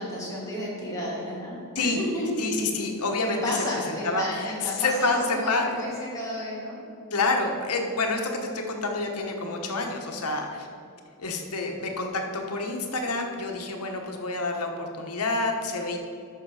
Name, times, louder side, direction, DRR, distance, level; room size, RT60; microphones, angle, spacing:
voice 1, 0.0-2.3 3.2-6.8, left 1 dB, 15° left, -6 dB, 2.6 m, -32 dB
voice 2, 2.4-5.7 7.1-10.7 11.2-16.0, left 3 dB, 90° left, 3 dB, 1.2 m, -28 dB
13.5 x 5.8 x 4.8 m, 2.5 s
head